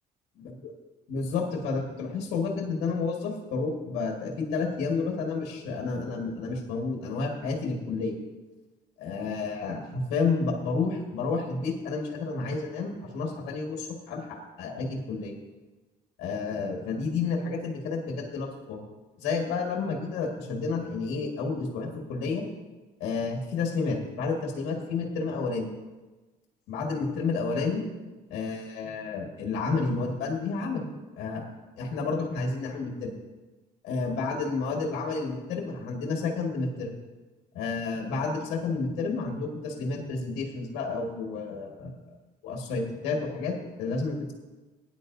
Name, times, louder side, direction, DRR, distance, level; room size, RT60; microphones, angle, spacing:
voice 1, 1.1-8.2 9.0-15.4 16.2-18.8 19.2-22.4 23.0-25.7 26.7-27.8 28.3-30.9 31.2-31.4 31.8-33.1 33.8-36.9 37.5-42.0 42.4-44.3, left 4 dB, 90° left, 1 dB, 1.7 m, -30 dB
18.0 x 10.0 x 2.6 m, 1.2 s
cardioid pair, 110°, 17 cm